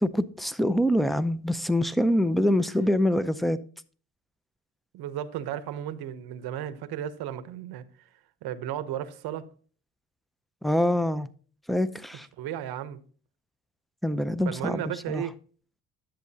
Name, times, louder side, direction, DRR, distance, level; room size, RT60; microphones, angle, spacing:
voice 1, 0.0-3.6 10.6-11.3 11.7-12.3 14.0-15.2, equal, ahead, 0.5 m, -25 dB
voice 2, 4.9-7.8 8.4-9.4 12.4-13.0 14.4-15.3, right 11 dB, 80° right, 0.9 m, -34 dB
10.5 x 7.5 x 2.8 m
cardioid pair, 85°, 37 cm